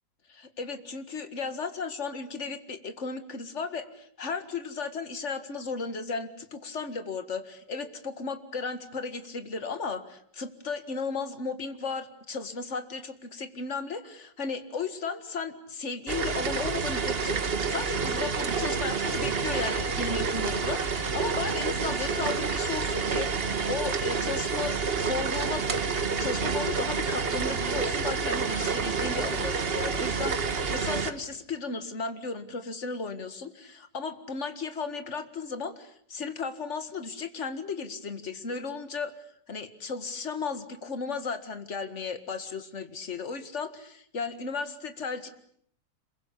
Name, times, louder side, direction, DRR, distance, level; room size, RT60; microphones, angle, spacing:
voice 1, 0.3-25.7 26.2-39.1 39.5-45.3, left 4 dB, 40° left, 9 dB, 2.1 m, -35 dB
sound 1, 16.1-31.1, right 5 dB, 35° right, 1.4 m, -29 dB
26.5 x 23.0 x 8.5 m, 0.65 s
omnidirectional pair, 2.0 m